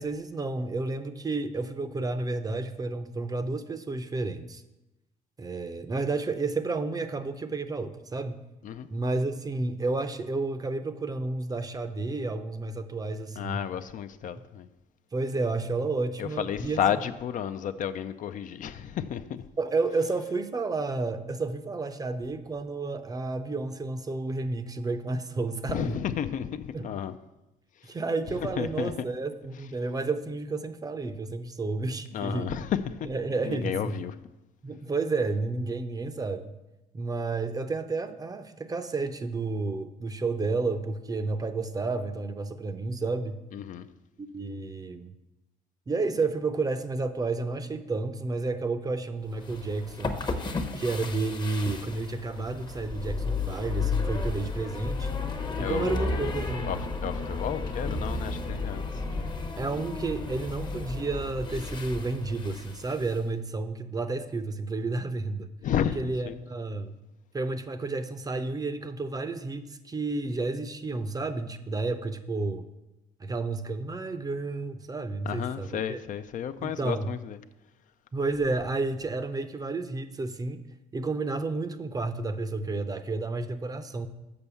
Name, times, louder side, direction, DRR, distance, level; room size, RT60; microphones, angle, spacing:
voice 1, 0.0-4.6 5.4-8.4 8.9-13.6 15.1-16.8 19.6-26.0 26.7-26.9 27.8-32.5 33.0-34.0 34.6-36.5 36.9-43.4 44.2-45.1 45.9-50.2 50.7-55.1 55.6-56.7 59.6-65.5 66.0-67.0 67.3-72.7 73.2-76.0 76.6-77.1 78.1-80.6 80.9-84.1, right 3 dB, 20° right, 0.6 m, -31 dB
voice 2, 13.4-14.7 16.2-19.4 25.7-27.2 27.8-27.9 28.6-28.9 32.1-33.1 33.4-34.1 43.5-43.9 55.6-56.8 57.0-59.3 65.6-66.0 66.3-66.4 75.3-77.4, left 9 dB, 50° left, 0.4 m, -32 dB
sound 1, 49.3-63.2, left 3 dB, 25° left, 0.8 m, -33 dB
6.9 x 5.3 x 6.9 m
cardioid pair, 110°, 17 cm